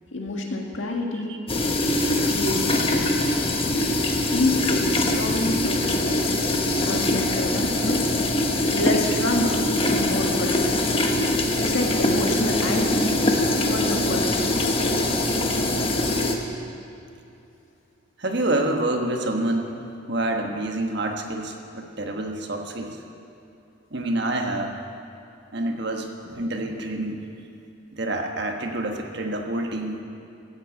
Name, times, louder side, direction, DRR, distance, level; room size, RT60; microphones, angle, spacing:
voice 1, 0.1-1.3 2.3-3.4 4.3-6.3 6.8-8.0 8.7-9.6 10.0-10.8 11.6-13.1 13.6-14.8, left 1 dB, 65° left, 1 dB, 1.8 m, -28 dB
sound 1, 1.5-16.4, left 1 dB, 25° left, 1.0 m, -23 dB
voice 2, 18.2-19.8 20.1-23.0 23.9-24.7 25.5-27.2 27.9-30.0, right 1 dB, 55° right, 3 dB, 1.3 m, -27 dB
15.5 x 8.1 x 8.3 m, 2.7 s
head